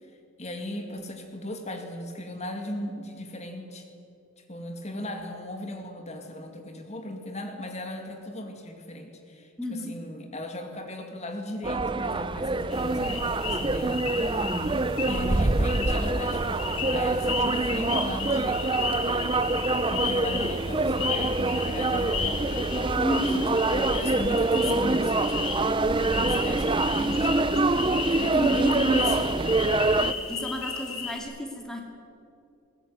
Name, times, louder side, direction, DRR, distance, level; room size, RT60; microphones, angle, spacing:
voice 1, 0.4-3.9 4.5-14.0 15.1-19.1 19.9-25.4 26.0-27.4 28.1-29.6, left 1 dB, 30° left, 4 dB, 2.4 m, -36 dB
voice 2, 9.6-9.9 14.2-14.6 23.0-23.5 30.0-31.8, equal, 5° left, 1 dB, 2.4 m, -32 dB
sound 1, 11.6-30.1, right 2 dB, 25° right, 0.6 m, -25 dB
sound 2, 12.7-31.2, left 6 dB, 85° left, 3.1 m, -34 dB
21.0 x 19.5 x 9.4 m, 2.7 s
head